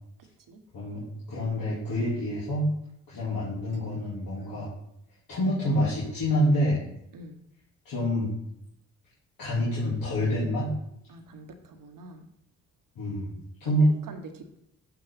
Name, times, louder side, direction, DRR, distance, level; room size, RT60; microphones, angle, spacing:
voice 1, 0.2-0.6 7.1-7.4 11.1-12.3 13.6-13.8 14.1-14.6, right 2 dB, 55° right, 7 dB, 1.1 m, -45 dB
voice 2, 1.3-2.7 3.1-4.7 5.3-6.8 7.8-8.3 9.4-10.7 13.0-13.3 13.6-13.9, equal, 60° left, -8 dB, 2.6 m, -26 dB
6.9 x 5.2 x 3.5 m, 0.77 s
hypercardioid pair, 45°, 40 cm